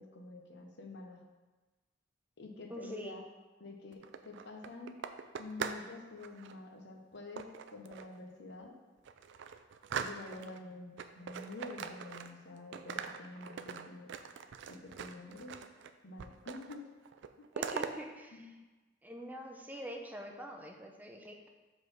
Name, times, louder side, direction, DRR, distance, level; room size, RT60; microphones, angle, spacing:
voice 1, 0.0-1.3 2.4-3.2 3.6-5.0 5.4-8.8 9.9-14.2 14.7-15.6 16.0-17.0 17.4-17.5 18.3-18.6, left 2 dB, 60° left, 3 dB, 0.8 m, -48 dB
voice 2, 2.7-3.2 17.5-18.6 19.0-21.5, equal, 10° right, 2 dB, 0.6 m, -45 dB
sound 1, 3.9-5.9 6.2-6.6 7.4-8.2 8.6-8.7 9.0-10.6 11.0-12.5 12.7-15.9 16.2-16.8 17.0-17.9, right 6 dB, 65° right, 0.4 m, -42 dB
5.3 x 4.0 x 6.0 m, 1.2 s
head